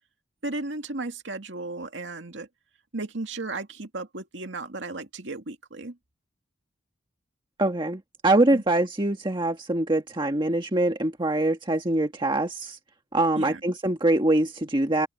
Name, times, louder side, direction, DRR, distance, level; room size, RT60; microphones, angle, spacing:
voice 1, 0.4-2.5 2.9-6.0 8.5-8.6 13.4-13.6, right 2 dB, 80° right, 2.3 m, -35 dB
voice 2, 7.6-12.8 13.1-15.1, right 2 dB, 25° right, 1.6 m, -24 dB
open air
head